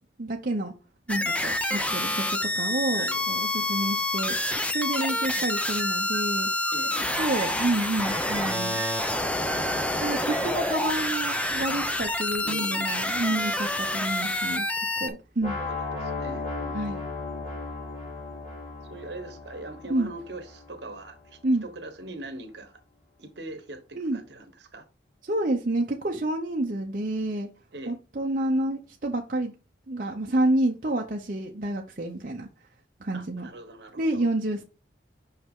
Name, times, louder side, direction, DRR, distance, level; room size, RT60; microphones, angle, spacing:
voice 1, 0.2-0.7 1.1-4.4 4.7-6.5 7.2-8.8 9.9-14.7 15.0-15.6 16.7-17.0 19.9-20.1 21.4-21.7 23.9-24.2 25.2-27.5 27.9-29.5 29.9-32.5 33.0-33.5 34.0-34.6, right 1 dB, 45° right, 0.7 m, -29 dB
sound 1, 1.1-15.1, left 1 dB, 5° left, 0.5 m, -28 dB
sound 2, 5.3-13.4, right 8 dB, 90° right, 0.6 m, -39 dB
voice 2, 6.7-7.0 12.4-13.4 13.8-13.9 15.5-16.8 18.9-22.7 23.2-24.8 27.7-27.9 33.1-34.2, right 2 dB, 65° right, 1.2 m, -42 dB
sound 3, 15.4-21.3, left 3 dB, 40° left, 3.2 m, -36 dB
5.6 x 5.6 x 3.7 m
head